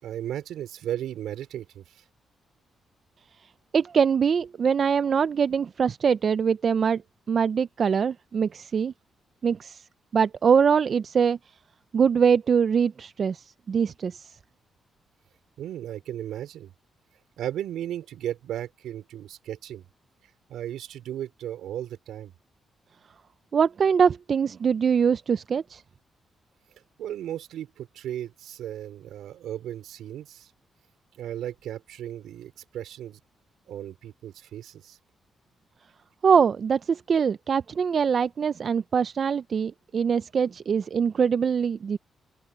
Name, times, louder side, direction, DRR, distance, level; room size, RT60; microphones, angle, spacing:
voice 1, 0.0-2.0 15.6-16.7 17.4-19.8 20.5-22.3 27.0-30.5 31.1-33.2 33.7-35.0, right 11 dB, 85° right, 4.6 m, -35 dB
voice 2, 3.7-7.0 7.3-8.9 9.4-9.8 10.1-11.4 11.9-14.3 23.5-25.8 36.2-42.0, right 6 dB, 55° right, 0.6 m, -23 dB
open air
cardioid pair, 65°, 0 cm